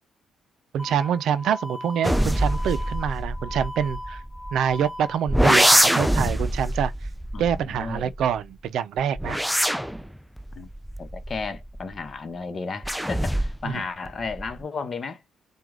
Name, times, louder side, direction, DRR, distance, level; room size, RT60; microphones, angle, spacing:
voice 1, 0.7-4.2 4.5-6.9 7.4-9.4 13.6-13.8, right 8 dB, 75° right, 0.5 m, -26 dB
sound 1, 0.8-5.8, left 1 dB, 25° left, 1.4 m, -38 dB
sound 2, 2.0-4.8 5.3-8.4 9.0-12.0 12.8-13.7 14.1-14.6, equal, ahead, 0.3 m, -24 dB
voice 2, 7.3-8.1 10.6-10.7 11.0-15.2, left 4 dB, 40° left, 0.9 m, -33 dB
4.6 x 2.3 x 3.6 m
cardioid pair, 90°, 0 cm